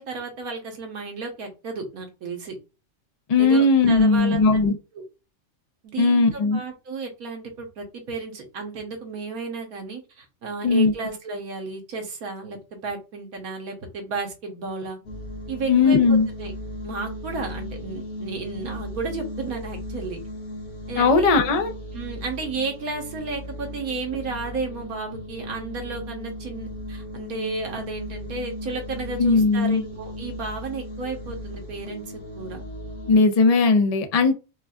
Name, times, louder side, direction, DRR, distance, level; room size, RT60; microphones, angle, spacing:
voice 1, 0.0-2.5 3.4-4.4 4.9-5.0 5.8-15.0 15.5-16.0 16.4-16.5 16.8-20.2 20.9-21.3 21.9-32.6, right 4 dB, 85° right, 1.6 m, -33 dB
voice 2, 3.3-4.8 6.0-6.6 10.6-10.9 15.7-16.3 21.0-21.7 29.2-29.8 33.1-34.3, left 3 dB, 45° left, 0.5 m, -18 dB
sound 1, 15.0-33.2, left 1 dB, 85° left, 1.7 m, -36 dB
5.3 x 2.4 x 2.4 m
omnidirectional pair, 1.5 m